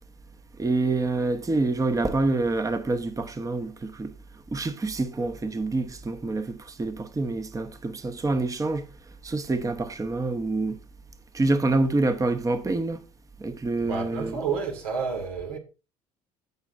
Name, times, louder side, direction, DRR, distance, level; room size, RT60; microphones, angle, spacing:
voice 1, 0.6-4.1 4.5-8.9 9.2-10.8 11.3-13.0 13.4-14.4, right 2 dB, 15° right, 0.9 m, -26 dB
voice 2, 13.8-15.6, right 5 dB, 80° right, 1.9 m, -30 dB
14.5 x 6.0 x 2.5 m
hypercardioid pair, 65°, 19 cm